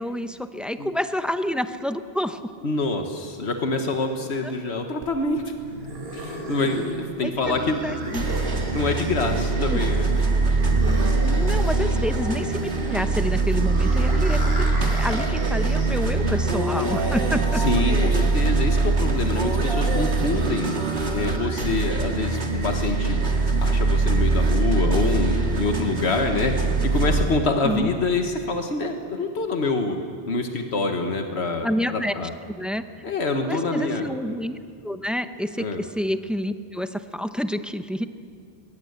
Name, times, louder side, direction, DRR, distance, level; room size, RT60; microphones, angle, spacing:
voice 1, 0.0-2.5 4.4-4.5 6.9-7.0 7.2-7.3 7.8-8.4 9.6-9.8 11.2-14.7 15.0-17.6 19.7-20.0 27.6-27.9 31.6-33.0 33.4-34.6 34.8-38.1, equal, ahead, 9 dB, 0.7 m, -28 dB
voice 2, 2.6-5.5 6.1-7.8 8.7-10.1 14.0-14.3 17.5-20.7 21.1-23.2 23.6-30.0 30.2-31.7 31.9-32.3 33.0-34.1 35.6-35.8, left 3 dB, 85° left, 4 dB, 1.6 m, -26 dB
sound 1, 5.0-18.0, right 1 dB, 70° right, 3.2 m, -35 dB
sound 2, 7.4-27.2, right 3 dB, 90° right, 2.3 m, -23 dB
22.5 x 21.0 x 8.1 m, 2.3 s
omnidirectional pair, 1.1 m